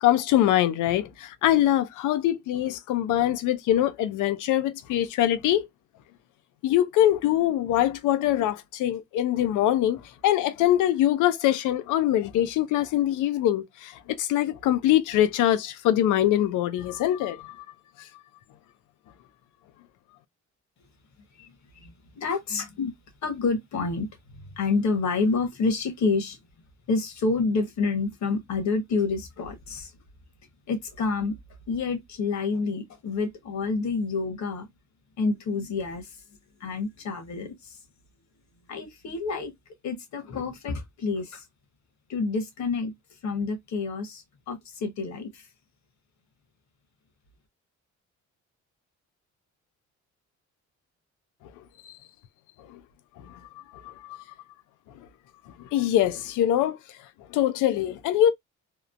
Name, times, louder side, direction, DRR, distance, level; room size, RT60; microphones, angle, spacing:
voice 1, 0.0-5.7 6.6-17.6 18.0-18.1 52.7-52.8 53.2-53.4 53.8-54.2 55.6-56.8 57.3-58.3, left 12 dB, 85° left, 0.5 m, -23 dB
voice 2, 21.8-22.9 23.2-24.1 24.3-26.4 26.9-29.9 30.7-31.3 31.7-34.7 35.2-36.1 36.6-37.8 38.7-39.5 39.8-41.4 42.1-42.9 43.2-45.4, left 4 dB, 65° left, 1.0 m, -28 dB
2.9 x 2.0 x 2.4 m
cardioid pair, 90°, 30 cm